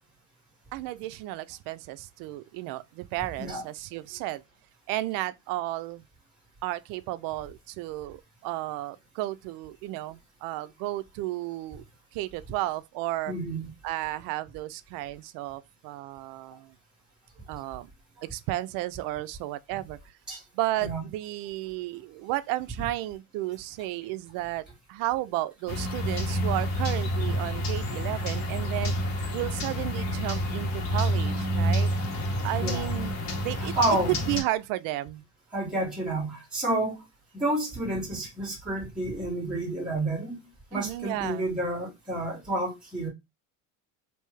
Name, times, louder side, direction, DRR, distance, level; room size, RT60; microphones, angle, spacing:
voice 1, 0.7-4.4 4.9-6.0 6.6-11.8 12.1-13.3 13.8-16.7 17.5-17.9 18.2-20.0 20.5-28.9 29.3-31.9 32.4-33.7 34.1-35.2 40.7-41.5, right 16 dB, 70° right, 0.5 m, -33 dB
voice 2, 13.3-13.7 20.3-20.4 20.8-21.0 32.6-32.9 33.6-34.2 35.5-36.9 37.4-40.4 40.7-43.1, right 2 dB, ahead, 1.9 m, -29 dB
sound 1, 25.7-34.4, equal, 50° left, 1.4 m, -28 dB
3.3 x 2.7 x 3.1 m
cardioid pair, 130°, 35 cm